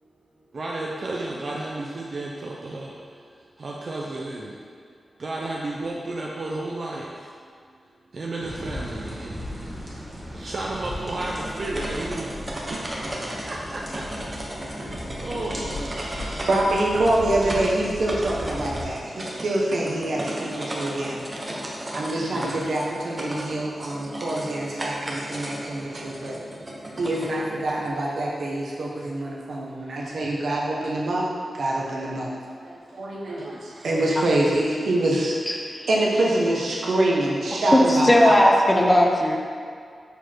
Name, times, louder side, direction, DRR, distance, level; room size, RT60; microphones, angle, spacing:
voice 1, 0.5-2.9 3.6-4.5 5.2-7.1 8.1-9.3 10.4-12.3 12.7-12.8 13.4-13.8 14.8-16.1 22.1-22.6 33.4-33.6, right 2 dB, 50° right, -3 dB, 0.7 m, -32 dB
sound 1, 8.4-18.9, left 1 dB, ahead, 1.4 m, -37 dB
sound 2, 10.9-27.9, right 1 dB, 20° right, 1.0 m, -35 dB
voice 2, 15.5-21.2 21.9-26.4 27.0-31.3 31.5-32.3 32.6-33.5 33.8-35.4 35.9-38.4, right 1 dB, 75° right, -3 dB, 1.2 m, -25 dB
voice 3, 35.5-35.9 37.7-39.4, left 1 dB, 15° left, 0 dB, 0.8 m, -18 dB
6.8 x 4.8 x 4.5 m, 2.1 s
wide cardioid pair, 115°, 0 cm